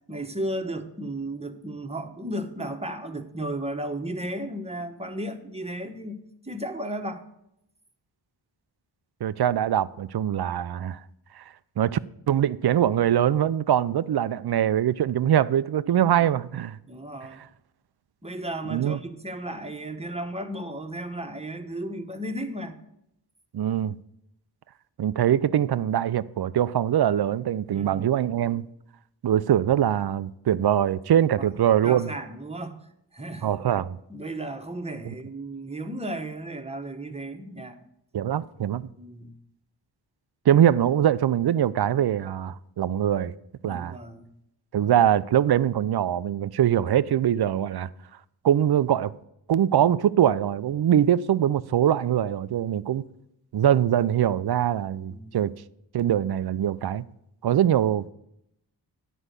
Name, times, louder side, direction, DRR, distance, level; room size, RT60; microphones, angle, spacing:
voice 1, 0.1-6.2 6.4-7.2 15.9-16.0 16.9-17.4 18.2-22.8 27.7-28.0 31.4-31.5 31.8-32.8 33.1-33.5 34.1-37.8 39.0-39.3 43.6-44.3 55.1-55.5, right 1 dB, 15° right, 1.2 m, -34 dB
voice 2, 9.2-11.0 11.4-11.5 11.8-12.0 12.3-16.8 18.7-19.0 23.5-24.0 25.0-28.6 29.2-32.1 33.4-34.0 38.1-38.9 40.5-43.3 43.6-43.9 44.7-47.9 48.4-49.1 49.5-53.1 53.5-55.5 55.9-57.0 57.4-58.1, right 10 dB, 60° right, 0.5 m, -23 dB
9.9 x 5.0 x 8.1 m
cardioid pair, 45°, 45 cm